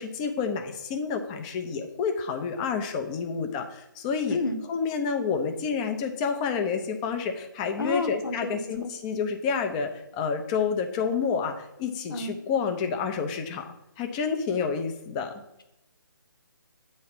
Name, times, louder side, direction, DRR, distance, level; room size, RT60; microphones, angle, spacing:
voice 1, 0.0-4.4 4.7-13.6 14.0-15.3, left 5 dB, 20° left, 5 dB, 0.7 m, -29 dB
voice 2, 7.8-8.9 12.1-12.4, left 3 dB, 75° left, 6 dB, 1.2 m, -30 dB
8.4 x 3.2 x 5.8 m, 0.86 s
figure-of-eight pair, 150°, 12 cm